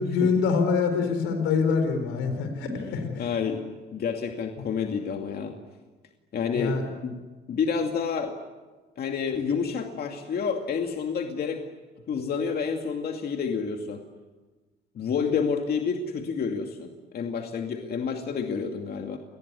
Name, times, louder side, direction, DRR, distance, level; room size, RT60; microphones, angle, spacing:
voice 1, 0.0-3.1 6.5-6.8, left 5 dB, 90° left, 6 dB, 4.2 m, -25 dB
voice 2, 2.7-3.6 3.9-5.5 6.3-7.2 7.5-8.4 9.0-11.6 12.1-14.0 14.9-19.2, left 6 dB, 55° left, 4 dB, 2.5 m, -29 dB
28.0 x 20.0 x 9.7 m, 1.3 s
cardioid pair, 90°, 20 cm